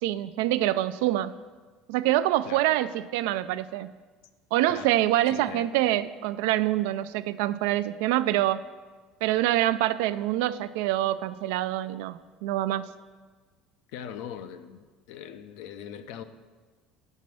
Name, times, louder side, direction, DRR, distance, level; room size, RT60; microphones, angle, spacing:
voice 1, 0.0-1.3 1.9-3.9 4.5-8.6 9.2-12.9, right 14 dB, 85° right, 14 dB, 0.3 m, -25 dB
voice 2, 5.3-5.7 13.9-16.2, left 9 dB, 75° left, 10 dB, 0.5 m, -41 dB
7.5 x 5.4 x 6.1 m, 1.4 s
cardioid pair, 135°, 0 cm